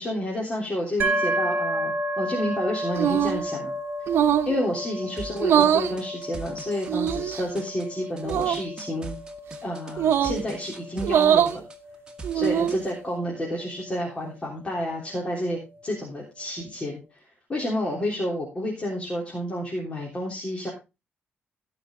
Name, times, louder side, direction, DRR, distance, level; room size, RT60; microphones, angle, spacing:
voice 1, 0.0-3.7 4.5-9.1 9.6-11.6 12.3-17.0 17.5-20.7, equal, 25° left, -3 dB, 3.5 m, -30 dB
sound 1, 1.0-14.7, right 1 dB, 50° right, 4.0 m, -32 dB
sound 2, 3.0-3.4 4.1-4.6 5.4-5.9 6.9-7.4 8.2-8.6 10.0-10.4 11.0-11.6 12.2-12.8, right 9 dB, 75° right, 0.9 m, -22 dB
sound 3, 5.2-12.8, right 4 dB, 20° right, 1.9 m, -41 dB
17.5 x 6.1 x 3.8 m, 0.27 s
cardioid pair, 125°, 4 cm